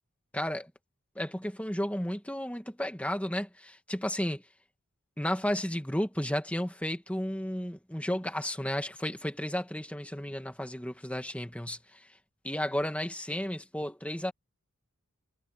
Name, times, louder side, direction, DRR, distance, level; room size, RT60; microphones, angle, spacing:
voice 1, 0.3-0.7 1.2-4.4 5.2-12.0 12.4-14.3, left 1 dB, 5° left, 2.1 m, -33 dB
head